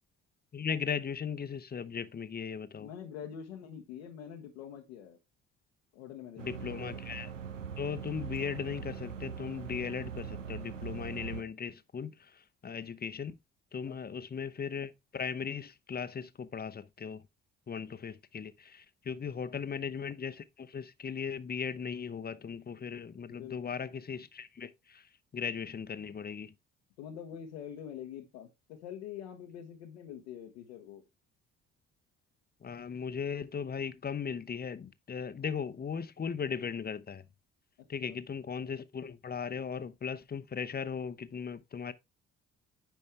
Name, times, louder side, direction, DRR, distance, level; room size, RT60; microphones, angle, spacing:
voice 1, 0.5-2.9 6.4-7.3 7.8-13.4 13.7-17.2 17.7-26.5 32.6-37.2 37.9-41.9, left 6 dB, 25° left, 0.8 m, -38 dB
voice 2, 2.8-5.2 5.9-6.8 13.8-14.2 19.4-19.7 23.2-23.9 27.0-31.0 38.0-38.2, left 9 dB, 70° left, 1.1 m, -45 dB
sound 1, 6.4-11.4, right 7 dB, 90° right, 0.6 m, -41 dB
9.1 x 5.4 x 3.3 m
figure-of-eight pair, 45°, 37 cm